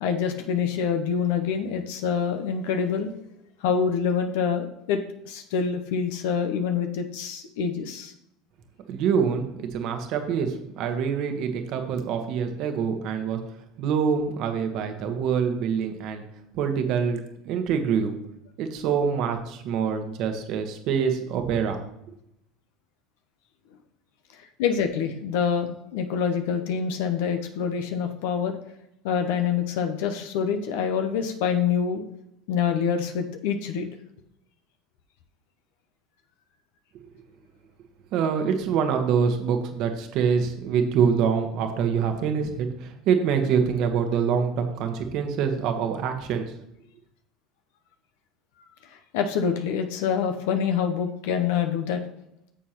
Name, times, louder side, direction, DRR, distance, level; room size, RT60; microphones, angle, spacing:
voice 1, 0.0-3.1 3.6-8.1 24.6-28.6 29.0-32.0 32.5-33.9 49.1-52.0, left 7 dB, 70° left, 6 dB, 0.8 m, -26 dB
voice 2, 8.9-13.4 13.8-16.2 16.5-17.2 17.4-18.2 18.6-21.8 36.9-37.1 38.1-46.5, right 6 dB, 60° right, 6 dB, 1.4 m, -25 dB
10.0 x 7.0 x 3.0 m, 0.78 s
hypercardioid pair, 80°, 0 cm